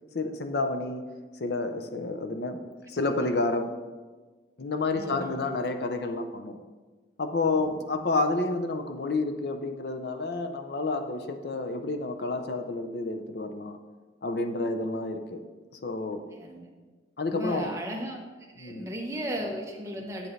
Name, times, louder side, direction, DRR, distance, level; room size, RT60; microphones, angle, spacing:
voice 1, 0.1-1.1 1.4-2.6 2.9-3.7 4.6-6.6 7.2-13.8 14.2-15.4 15.8-16.2 17.2-17.8 18.6-18.9, left 2 dB, 60° left, 7 dB, 0.6 m, -29 dB
voice 2, 4.9-5.4 7.5-7.8 16.3-16.7 17.3-18.2 18.6-20.3, equal, 15° right, 0 dB, 0.9 m, -36 dB
8.6 x 7.9 x 3.2 m, 1.3 s
head